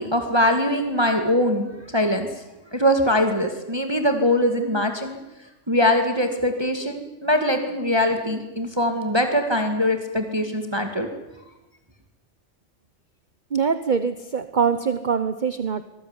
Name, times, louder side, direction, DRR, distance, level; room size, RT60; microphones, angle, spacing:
voice 1, 0.0-2.3 2.7-5.2 5.7-11.1, left 1 dB, 20° right, 5 dB, 2.2 m, -22 dB
voice 2, 13.5-15.8, right 6 dB, 40° right, 11 dB, 1.1 m, -23 dB
25.0 x 19.5 x 9.8 m, 0.98 s
omnidirectional pair, 1.3 m